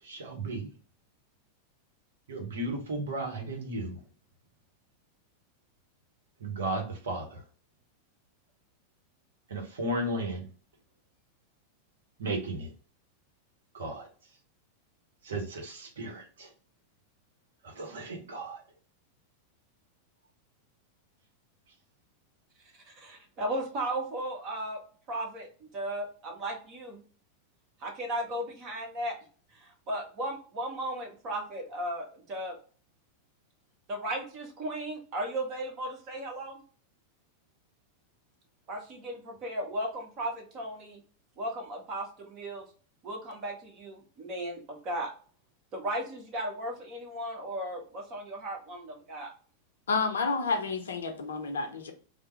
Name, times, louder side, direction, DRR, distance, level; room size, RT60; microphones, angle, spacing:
voice 1, 0.1-0.7 2.3-3.9 6.4-7.2 9.5-10.4 12.2-12.7 13.8-14.1 15.3-16.2 17.8-18.6, right 1 dB, 65° right, 0.9 m, -34 dB
voice 2, 22.8-24.8 25.1-27.0 27.8-29.2 29.5-32.6 33.9-36.6 38.7-41.0 41.4-42.6 43.0-45.1 45.7-49.3, right 1 dB, 35° right, 1.1 m, -36 dB
voice 3, 49.9-51.9, left 4 dB, 65° left, 0.6 m, -30 dB
3.3 x 2.0 x 3.0 m
figure-of-eight pair, 90°, 0 cm